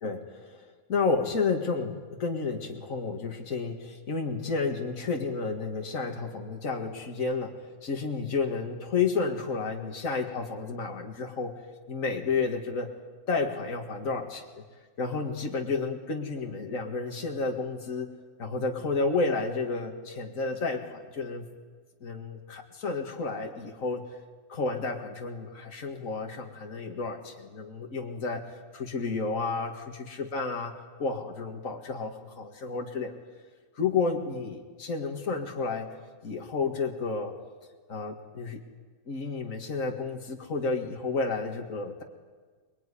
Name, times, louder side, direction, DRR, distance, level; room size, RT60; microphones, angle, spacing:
voice 1, 0.0-11.5 11.9-12.9 13.3-14.6 15.0-18.1 18.4-21.5 22.0-24.1 24.5-28.5 28.7-33.1 33.8-35.9 36.2-37.3 37.9-38.6 39.1-42.0, left 4 dB, 70° left, 2 dB, 2.4 m, -31 dB
25.0 x 22.0 x 10.0 m, 1.5 s
omnidirectional pair, 1.5 m